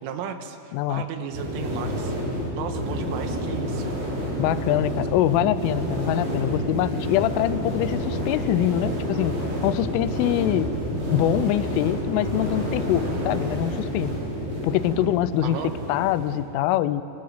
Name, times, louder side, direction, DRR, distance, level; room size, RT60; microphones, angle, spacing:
voice 1, 0.0-2.2 2.6-3.9 15.4-15.8, right 8 dB, 90° right, 7 dB, 3.7 m, -34 dB
voice 2, 0.7-1.1 4.4-10.7 11.1-14.1 14.6-17.0, left 12 dB, 85° left, 15 dB, 3.2 m, -24 dB
sound 1, 1.3-16.4, equal, 60° right, 8.3 m, -29 dB
24.0 x 17.0 x 8.1 m, 2.9 s
omnidirectional pair, 5.6 m